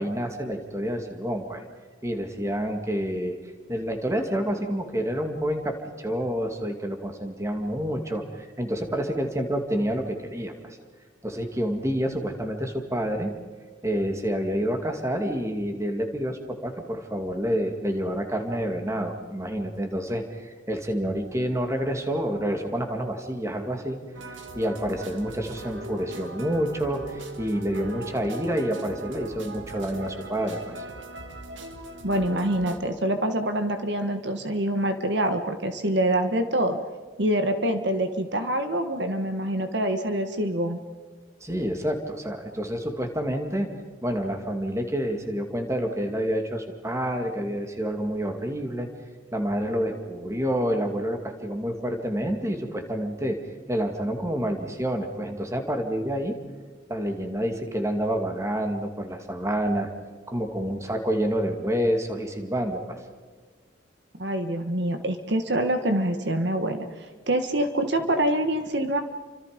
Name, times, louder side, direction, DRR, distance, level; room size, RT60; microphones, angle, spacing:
voice 1, 0.0-1.6 2.0-3.4 3.7-10.8 11.2-13.3 13.8-24.0 24.3-30.8 41.4-43.7 44.0-48.9 49.3-53.4 53.7-56.4 56.9-59.9 60.3-63.0, equal, 15° right, 4 dB, 2.4 m, -28 dB
sound 1, 24.1-32.8, right 2 dB, 80° right, 2.4 m, -39 dB
voice 2, 32.0-36.8 37.2-40.8 64.2-69.0, right 1 dB, 65° right, 7 dB, 1.5 m, -25 dB
30.0 x 25.5 x 5.2 m, 1.5 s
head